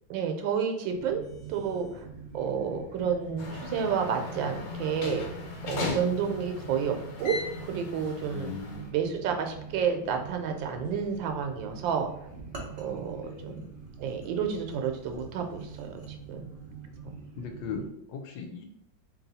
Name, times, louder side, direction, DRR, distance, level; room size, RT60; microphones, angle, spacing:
voice 1, 0.1-1.2 1.5-2.0 2.3-5.2 5.6-7.4 7.6-8.5 8.9-12.1 12.8-13.7 14.0-16.4, right 7 dB, 85° right, 4 dB, 1.3 m, -30 dB
sound 1, 0.9-17.9, right 6 dB, 25° right, 0.8 m, -46 dB
sound 2, 3.4-8.9, left 3 dB, 60° left, 1.1 m, -37 dB
voice 2, 8.3-8.9 12.8-13.6 17.4-18.6, left 5 dB, 80° left, 5 dB, 1.3 m, -39 dB
sound 3, 12.3-16.1, right 1 dB, 60° right, 0.4 m, -48 dB
3.0 x 3.0 x 4.0 m, 0.78 s
omnidirectional pair, 2.0 m